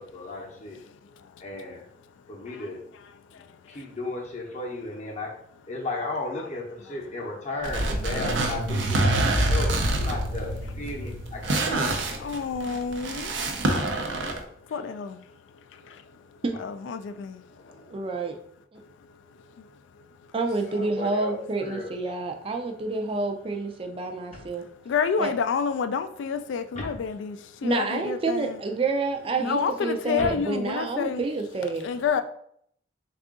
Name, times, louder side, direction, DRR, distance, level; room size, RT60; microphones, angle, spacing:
voice 1, 0.0-0.8 1.4-1.8 2.3-2.8 3.7-5.3 5.7-6.6 6.9-12.2 13.9-14.4 17.6-17.7 21.0-21.4 21.6-21.9 26.8-26.9 30.2-30.3, left 2 dB, 40° left, 0.7 m, -34 dB
voice 2, 0.7-1.7 2.4-3.9 5.7-5.8 6.3-7.5 8.5-10.1 10.6-11.1 12.1-13.4 14.7-15.3 15.7-16.1 16.6-17.5 17.7-17.9 18.8-18.9 19.6-19.7 24.8-28.6 29.4-31.2 31.8-32.2, left 6 dB, 90° left, 0.3 m, -31 dB
sound 1, 7.6-12.7, equal, 55° right, 0.9 m, -28 dB
sound 2, 7.6-14.4, right 2 dB, 80° right, 0.5 m, -28 dB
voice 3, 17.9-18.4 18.7-18.8 20.3-24.6 25.2-25.3 27.6-32.2, right 3 dB, 30° right, 0.4 m, -29 dB
3.6 x 2.4 x 3.6 m
head